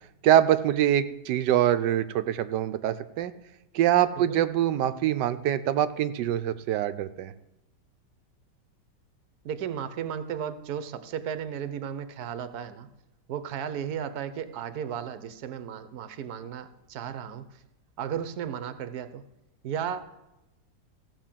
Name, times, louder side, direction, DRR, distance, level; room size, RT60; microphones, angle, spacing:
voice 1, 0.2-3.3 3.7-7.3, right 11 dB, 85° right, 12 dB, 1.3 m, -24 dB
voice 2, 9.4-12.9 13.3-17.4 18.0-19.2 19.6-20.3, right 8 dB, 70° right, 12 dB, 1.3 m, -34 dB
15.0 x 5.1 x 7.4 m, 0.93 s
omnidirectional pair, 1.8 m